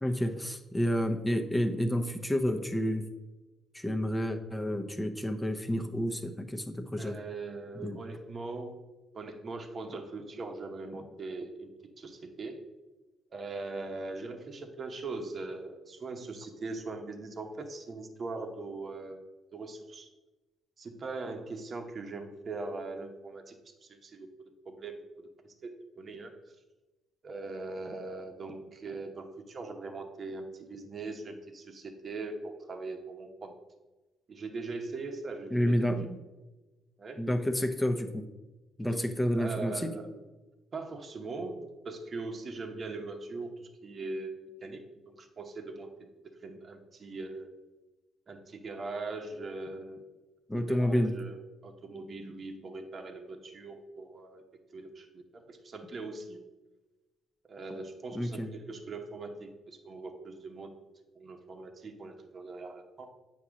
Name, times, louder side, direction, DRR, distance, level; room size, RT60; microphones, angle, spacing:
voice 1, 0.0-3.1 3.7-7.2 7.8-8.0 35.5-36.2 37.2-38.3 38.8-39.9 50.5-51.2 58.1-58.5, equal, 10° left, 6 dB, 0.8 m, -30 dB
voice 2, 7.0-8.8 9.1-11.7 12.0-12.6 13.3-19.2 19.5-20.1 20.8-24.3 24.6-26.4 27.2-33.5 34.3-36.1 37.0-37.2 39.3-40.1 40.7-45.9 46.4-47.5 48.3-50.0 50.5-54.4 54.7-56.4 57.4-60.7 61.1-63.1, right 3 dB, 45° right, 4 dB, 0.9 m, -41 dB
8.4 x 2.9 x 6.2 m, 1.1 s
cardioid pair, 90°, 0 cm